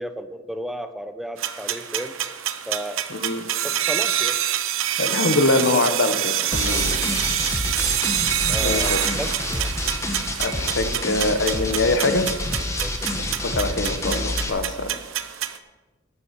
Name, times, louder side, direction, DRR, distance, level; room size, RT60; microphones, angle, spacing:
voice 1, 0.0-2.1 2.7-3.1 3.6-4.4 6.7-7.2 8.5-9.7 12.7-13.2, equal, ahead, 9 dB, 0.5 m, -34 dB
sound 1, 1.4-15.6, right 11 dB, 85° right, 0.7 m, -27 dB
voice 2, 3.1-3.5 5.0-7.0 8.6-9.0 10.4-12.3 13.2-14.9, left 2 dB, 60° left, 9 dB, 1.1 m, -23 dB
sound 2, 6.5-14.5, left 1 dB, 15° left, 1.1 m, -28 dB
12.5 x 7.3 x 5.9 m, 1.2 s
head